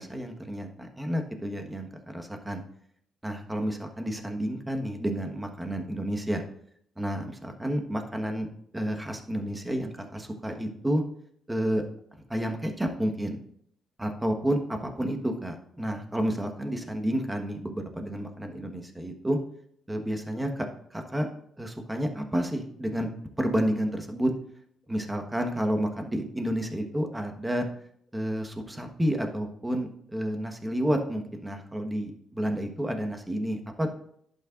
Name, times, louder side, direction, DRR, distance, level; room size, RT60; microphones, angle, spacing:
voice 1, 0.0-2.6 3.2-6.4 7.0-8.5 8.7-11.0 11.5-11.8 12.3-13.4 14.0-19.4 19.9-21.3 21.6-23.1 23.4-24.3 24.9-27.7 28.1-33.9, equal, 10° right, 4 dB, 1.4 m, -30 dB
11.0 x 8.4 x 2.5 m, 0.66 s
cardioid pair, 90°, 0 cm